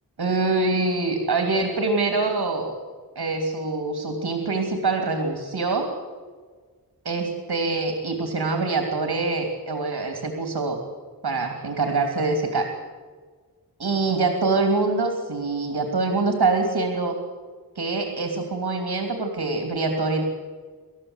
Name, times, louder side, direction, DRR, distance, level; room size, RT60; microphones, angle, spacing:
voice 1, 0.2-2.8 3.1-5.9 7.0-10.8 11.2-12.7 13.8-17.2 17.7-20.2, right 3 dB, 85° right, 4 dB, 3.2 m, -24 dB
28.0 x 14.0 x 8.2 m, 1.5 s
wide cardioid pair, 75°, 37 cm